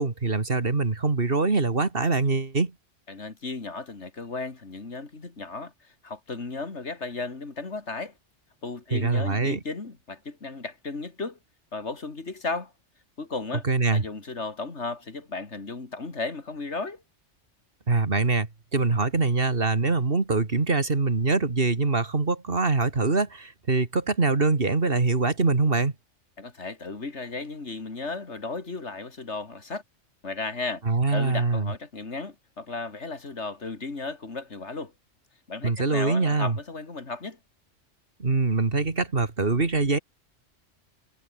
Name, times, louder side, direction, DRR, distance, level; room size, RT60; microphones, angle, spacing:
voice 1, 0.0-2.7 8.9-9.6 13.6-14.0 17.9-25.9 30.9-31.7 35.6-36.6 38.2-40.0, right 3 dB, 50° right, 2.3 m, -24 dB
voice 2, 3.1-5.7 6.0-8.1 8.6-11.4 11.7-12.7 13.2-13.6 13.9-17.0 26.4-29.8 30.2-34.9 35.5-37.4, left 3 dB, 65° left, 2.9 m, -35 dB
omnidirectional pair, 1.3 m